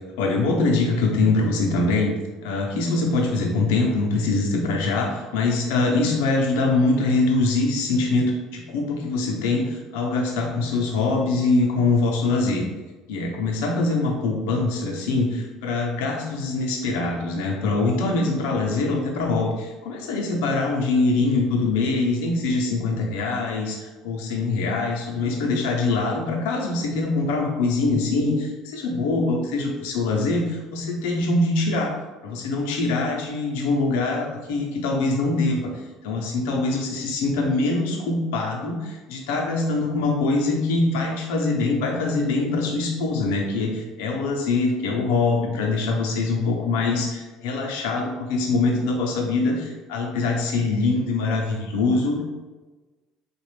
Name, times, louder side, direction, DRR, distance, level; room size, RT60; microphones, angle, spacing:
voice 1, 0.2-2.1 2.4-12.6 13.1-31.9 32.2-35.6 36.0-52.2, left 3 dB, 85° left, 0 dB, 0.8 m, -23 dB
4.1 x 2.6 x 3.2 m, 1.2 s
supercardioid pair, 115°, 0 cm